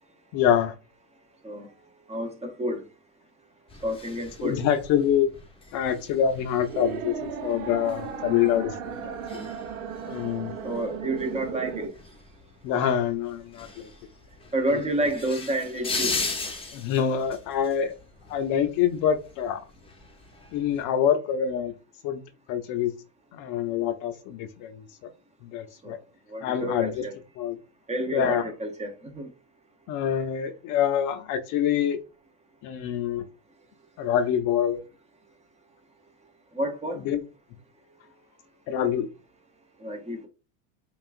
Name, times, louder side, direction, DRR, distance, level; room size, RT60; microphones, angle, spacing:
voice 1, 0.3-0.8 4.4-5.3 5.7-9.5 10.1-10.6 12.6-13.9 16.7-17.9 18.3-19.6 20.5-21.7 22.0-22.2 22.5-22.9 23.3-24.9 25.4-26.0 26.4-27.1 27.4-27.6 28.1-28.4 29.9-32.0 32.6-33.3 34.0-34.8 37.0-37.2 38.7-39.1, left 9 dB, 50° left, 0.6 m, -26 dB
voice 2, 2.1-2.8 3.8-4.6 10.6-11.9 14.5-16.2 25.8-26.0 26.3-27.1 27.9-29.3 36.5-37.1 39.8-40.3, right 1 dB, 15° right, 0.8 m, -29 dB
sound 1, 3.7-20.8, left 4 dB, 15° left, 0.8 m, -39 dB
sound 2, 5.9-11.9, right 7 dB, 85° right, 1.0 m, -36 dB
5.6 x 2.4 x 2.5 m
supercardioid pair, 120°, 41 cm